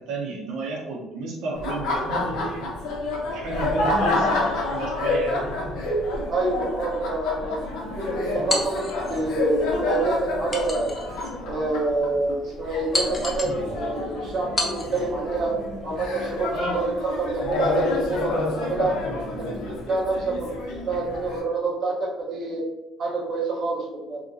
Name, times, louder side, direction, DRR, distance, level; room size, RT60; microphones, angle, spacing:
voice 1, 0.1-2.7 3.3-5.4 16.5-16.9, right 2 dB, 75° right, -3 dB, 0.7 m, -31 dB
Laughter, 1.5-21.4, left 2 dB, 75° left, 0.7 m, -28 dB
voice 2, 6.3-7.6 8.0-11.0 11.5-15.5 15.8-18.9 19.3-19.4 19.9-22.6 23.0-24.2, right 3 dB, 40° right, -4 dB, 0.8 m, -27 dB
sound 1, 8.5-9.2 10.5-11.3 11.9-12.0 12.9-13.6 14.6-15.1, left 2 dB, 20° left, 0.5 m, -29 dB
2.9 x 2.5 x 2.5 m, 0.97 s
cardioid pair, 145°, 0 cm